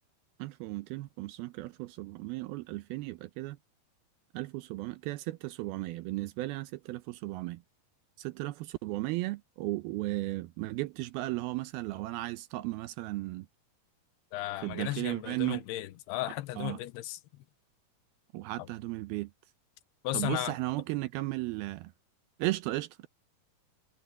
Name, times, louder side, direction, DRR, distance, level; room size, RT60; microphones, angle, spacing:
voice 1, 0.4-3.6 4.3-7.6 8.2-13.5 14.6-15.6 16.6-16.8 18.3-19.3 20.1-21.9 22.4-23.1, right 19 dB, 80° right, 2.4 m, -35 dB
voice 2, 14.3-17.4 18.6-18.7 20.0-20.6, left 15 dB, 90° left, 2.9 m, -35 dB
omnidirectional pair, 4.6 m